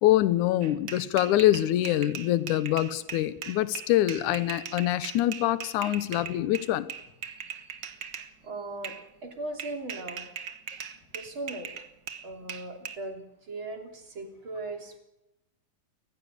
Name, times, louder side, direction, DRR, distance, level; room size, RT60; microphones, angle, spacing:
voice 1, 0.0-6.9, left 14 dB, 70° left, 15 dB, 2.3 m, -25 dB
sound 1, 0.6-8.3 8.8-9.0 9.6-13.0, right 8 dB, 70° right, 1.0 m, -40 dB
voice 2, 8.4-9.0 9.2-10.2 11.1-11.7 12.2-15.0, right 2 dB, 40° right, 4 dB, 3.5 m, -38 dB
28.5 x 15.0 x 8.0 m, 0.89 s
omnidirectional pair, 3.9 m